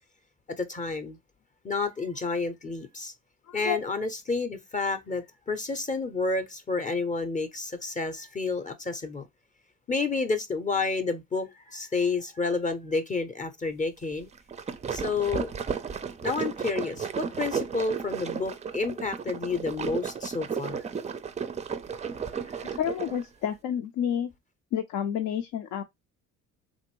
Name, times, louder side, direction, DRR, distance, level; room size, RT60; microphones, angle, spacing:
voice 1, 0.6-1.2 1.6-3.1 3.5-9.3 9.9-14.3 14.9-15.5 16.2-20.8 22.5-22.7, left 4 dB, 25° left, 0.6 m, -30 dB
voice 2, 3.5-3.8 22.8-24.3 24.7-25.8, left 9 dB, 75° left, 0.6 m, -29 dB
sound 1, 14.3-23.2, right 6 dB, 20° right, 0.4 m, -34 dB
3.4 x 2.5 x 2.9 m
cardioid pair, 90°, 33 cm